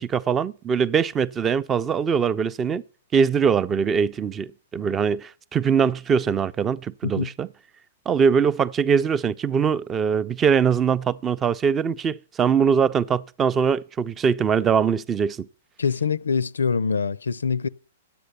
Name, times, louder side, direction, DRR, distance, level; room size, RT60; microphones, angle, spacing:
voice 1, 0.0-2.8 3.1-7.5 8.1-15.5, right 6 dB, 20° right, 0.4 m, -22 dB
voice 2, 15.8-17.7, left 5 dB, 90° left, 0.4 m, -24 dB
10.0 x 7.8 x 6.7 m
hypercardioid pair, 120°, 0 cm